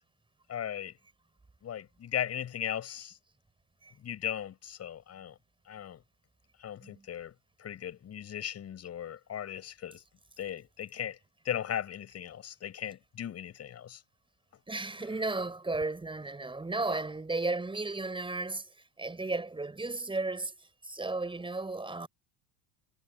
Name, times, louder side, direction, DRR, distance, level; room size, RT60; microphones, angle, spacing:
voice 1, 0.5-0.9 1.6-3.2 4.0-5.3 5.7-6.0 6.6-7.3 7.6-10.0 10.4-11.2 11.4-14.0, left 10 dB, 35° left, 7.7 m, -37 dB
voice 2, 14.7-22.1, right 3 dB, 10° right, 6.5 m, -34 dB
figure-of-eight pair, 75°, 42 cm